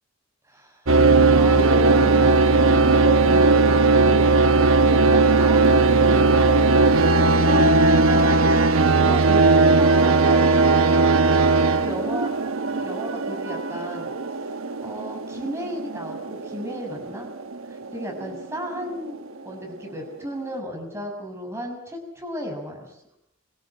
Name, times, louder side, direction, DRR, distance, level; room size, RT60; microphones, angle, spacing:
voice 1, 0.5-0.8 1.3-4.3 4.7-12.3 12.7-14.2 14.8-17.3 17.7-22.9, equal, 15° right, 1 dB, 6.7 m, -34 dB
sound 1, 0.9-19.1, right 3 dB, 85° right, 1.2 m, -18 dB
26.5 x 16.5 x 8.9 m, 0.73 s
head